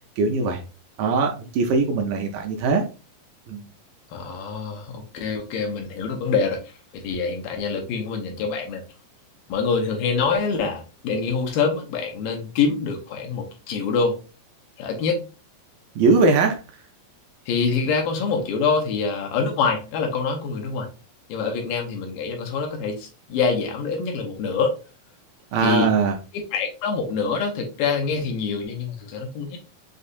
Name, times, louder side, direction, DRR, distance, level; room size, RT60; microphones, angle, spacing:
voice 1, 0.2-0.6 1.0-2.8 3.5-3.6 16.0-16.6 25.5-26.2, right 4 dB, 80° right, 2 dB, 2.0 m, -20 dB
voice 2, 4.1-6.6 6.9-8.8 9.5-14.2 14.8-15.2 17.5-20.9 21.3-24.7 25.6-25.9 26.3-29.6, left 5 dB, 80° left, 2 dB, 2.3 m, -25 dB
6.5 x 2.7 x 2.4 m, 0.33 s
omnidirectional pair, 4.2 m